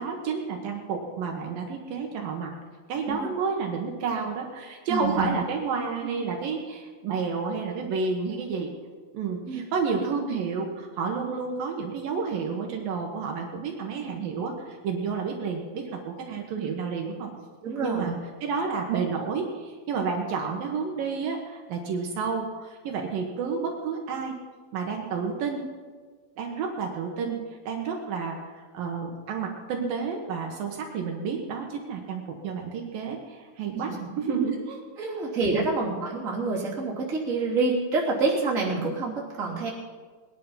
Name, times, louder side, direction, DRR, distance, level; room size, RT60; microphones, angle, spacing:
voice 1, 0.0-2.5 2.9-8.7 9.1-17.3 17.8-18.1 18.4-24.3 24.7-25.6 26.4-27.4 27.7-28.4 28.7-34.8 35.5-35.7, right 5 dB, 70° right, 1 dB, 3.1 m, -30 dB
voice 2, 4.9-5.3 9.5-9.6 17.6-18.1 33.7-33.9 35.0-39.7, right 3 dB, 25° right, -4 dB, 3.1 m, -27 dB
21.0 x 10.5 x 5.7 m, 1.5 s
omnidirectional pair, 4.2 m